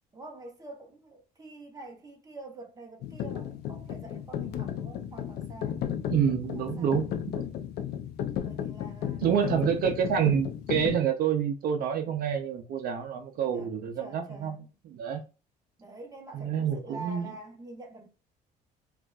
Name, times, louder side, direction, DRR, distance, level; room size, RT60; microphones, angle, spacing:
voice 1, 0.1-5.8 6.4-7.0 8.4-9.7 13.5-14.7 15.8-18.1, right 2 dB, 20° right, 1.0 m, -46 dB
sound 1, 3.0-11.0, left 10 dB, 70° left, 0.5 m, -34 dB
voice 2, 6.1-7.4 9.2-14.6 14.9-15.2 16.3-17.2, right 8 dB, 65° right, 0.5 m, -28 dB
4.4 x 2.4 x 2.3 m
cardioid pair, 110°, 17 cm